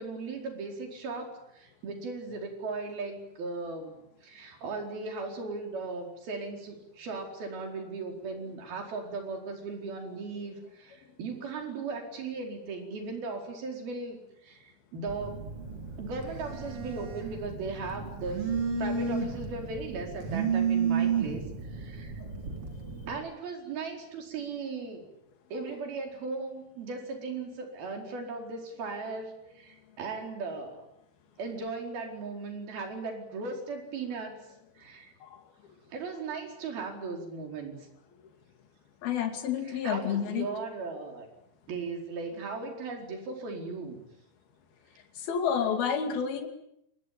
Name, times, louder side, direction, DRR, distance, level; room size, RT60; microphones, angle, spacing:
voice 1, 0.0-3.9 4.2-15.4 16.0-18.5 18.8-22.1 23.1-25.1 25.5-30.8 31.4-34.4 34.8-35.1 35.9-37.8 39.6-41.3 41.7-44.0, right 4 dB, 70° right, 3 dB, 6.5 m, -37 dB
Telephone, 15.1-23.1, right 6 dB, 35° right, 4.2 m, -32 dB
voice 2, 39.0-40.5 45.2-46.5, left 8 dB, 70° left, 6 dB, 4.4 m, -29 dB
28.5 x 20.5 x 9.0 m, 0.79 s
omnidirectional pair, 4.5 m